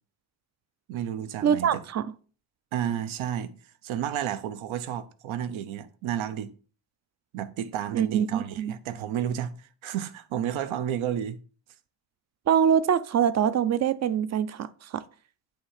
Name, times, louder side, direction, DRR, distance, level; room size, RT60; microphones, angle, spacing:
voice 1, 0.9-1.8 2.7-3.5 3.8-6.5 7.3-11.4, right 10 dB, 75° right, 0.8 m, -31 dB
voice 2, 1.4-2.1 7.9-8.8 12.5-15.0, right 8 dB, 35° right, 0.4 m, -24 dB
8.5 x 3.4 x 5.7 m
cardioid pair, 140°, 48 cm